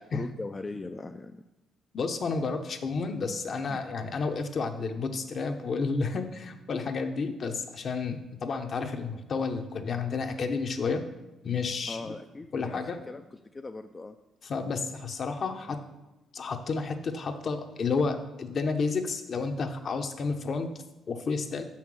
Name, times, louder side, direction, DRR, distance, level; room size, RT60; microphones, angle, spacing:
voice 1, 0.0-1.4 3.7-3.8 11.9-14.2, left 3 dB, 25° left, 6 dB, 0.4 m, -40 dB
voice 2, 1.9-11.0 11.4-12.1 12.5-13.0 14.4-15.8 16.3-20.7 21.1-21.7, left 4 dB, 50° left, 6 dB, 0.9 m, -31 dB
6.7 x 5.7 x 6.3 m, 1.0 s
cardioid pair, 90°, 0 cm